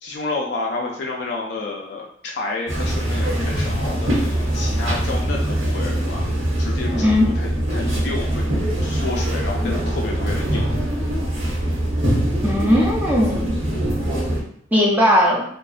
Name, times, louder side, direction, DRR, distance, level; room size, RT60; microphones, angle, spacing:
voice 1, 0.0-6.2 6.6-8.5 8.8-10.6, left 3 dB, 60° left, -1 dB, 0.3 m, -30 dB
sound 1, 2.7-14.4, right 1 dB, 75° right, 1.0 m, -23 dB
voice 2, 12.4-13.5 14.7-15.4, left 1 dB, 10° right, -4 dB, 0.5 m, -17 dB
2.5 x 2.1 x 2.4 m, 0.63 s
head